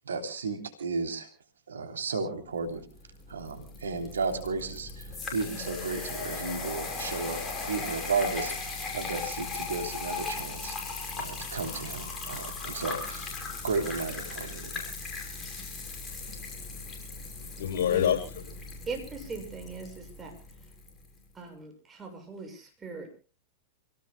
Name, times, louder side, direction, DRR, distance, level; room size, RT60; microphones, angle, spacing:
voice 1, 0.0-1.3 1.7-2.9 3.3-7.4 7.7-10.7 11.2-13.4 13.6-14.9, right 4 dB, 85° right, 5 dB, 3.3 m, -34 dB
sound 1, 3.0-21.0, left 4 dB, 20° left, 6.5 m, -38 dB
voice 2, 15.9-18.4, left 9 dB, 65° left, 3 dB, 7.3 m, -31 dB
voice 3, 18.9-20.3 21.4-23.1, right 3 dB, 20° right, 3 dB, 6.9 m, -39 dB
29.0 x 18.0 x 2.2 m, 0.35 s
hypercardioid pair, 105°, 0 cm